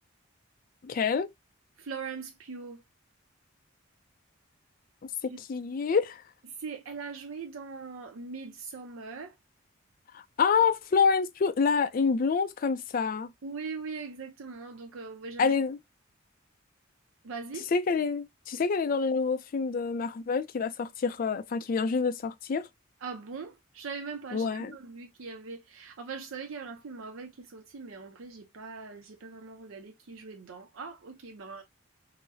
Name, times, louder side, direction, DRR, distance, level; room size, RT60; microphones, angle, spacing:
voice 1, 0.8-1.3 5.5-6.2 10.1-13.3 15.4-15.8 17.7-22.7 24.3-24.7, left 5 dB, 45° left, 0.3 m, -27 dB
voice 2, 1.8-2.8 5.3-5.4 6.5-9.4 13.4-15.5 17.2-17.7 23.0-31.6, right 5 dB, 80° right, 0.6 m, -41 dB
3.9 x 2.0 x 2.6 m
head